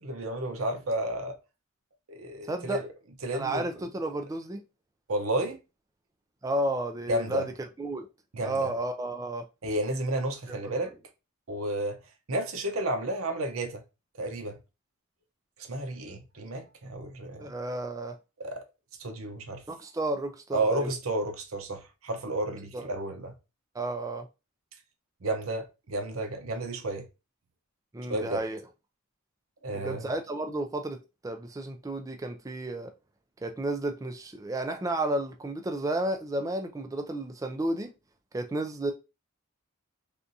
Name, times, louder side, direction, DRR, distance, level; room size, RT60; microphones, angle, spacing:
voice 1, 0.0-1.4 2.1-2.9 3.2-3.7 5.1-5.6 7.1-7.5 8.3-8.7 9.6-10.9 11.5-12.0 12.3-13.8 14.2-14.6 15.6-17.5 18.4-18.6 19.0-19.6 20.5-23.3 25.2-27.1 28.1-28.4 29.6-30.1, right 1 dB, 90° right, 0.8 m, -32 dB
voice 2, 2.5-2.8 3.3-4.6 6.4-7.4 7.8-8.1 8.4-9.4 10.5-10.6 17.4-18.2 19.7-20.9 22.7-22.9 23.7-24.3 27.9-28.6 29.7-32.9 33.4-37.9 38.3-38.9, right 2 dB, 15° right, 0.3 m, -32 dB
3.4 x 2.5 x 2.6 m
head